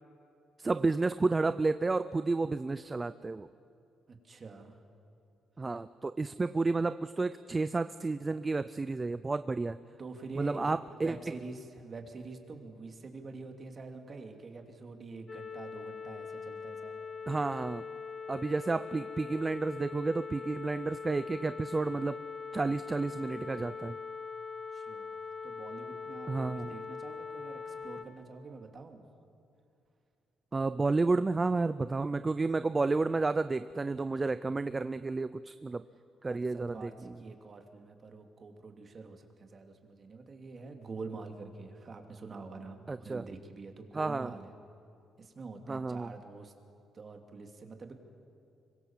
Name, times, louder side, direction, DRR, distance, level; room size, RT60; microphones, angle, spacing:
voice 1, 0.6-3.5 5.6-9.8 10.4-11.1 17.3-17.8 18.3-22.2 22.5-24.0 26.3-26.7 30.5-35.8 36.2-37.1 42.9-43.2 43.9-44.3 45.7-46.1, right 3 dB, 25° right, 13 dB, 0.5 m, -31 dB
voice 2, 4.1-4.8 10.0-10.7 11.0-17.0 24.7-29.0 36.3-44.5 45.2-46.5 46.9-47.9, right 3 dB, 40° right, 4 dB, 2.9 m, -46 dB
sound 1, 15.3-28.0, left 5 dB, 35° left, 1.6 m, -42 dB
25.5 x 23.5 x 7.5 m, 2.5 s
cardioid pair, 90°, 0 cm